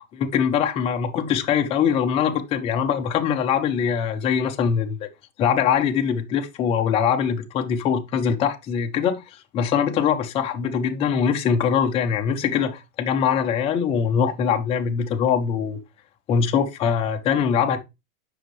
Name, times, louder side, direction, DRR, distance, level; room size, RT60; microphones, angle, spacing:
voice 1, 0.1-5.1 5.4-15.8 16.3-17.8, left 7 dB, 15° left, 0.4 m, -22 dB
7.8 x 5.4 x 3.0 m
supercardioid pair, 145°, 40 cm